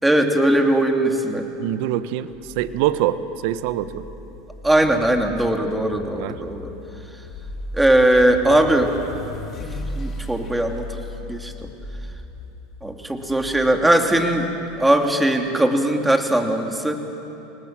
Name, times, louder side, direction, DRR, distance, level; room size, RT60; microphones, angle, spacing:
voice 1, 0.0-1.5 4.6-6.7 7.7-8.9 9.6-10.9 11.3-11.7 12.8-14.5 14.8-17.0, right 1 dB, 5° right, 4 dB, 2.6 m, -19 dB
voice 2, 1.6-4.1 6.2-6.4, right 12 dB, 65° right, 13 dB, 1.1 m, -24 dB
sound 1, 2.3-15.5, left 1 dB, 35° left, 3.3 m, -37 dB
27.5 x 19.5 x 7.5 m, 3.0 s
hypercardioid pair, 95°, 0 cm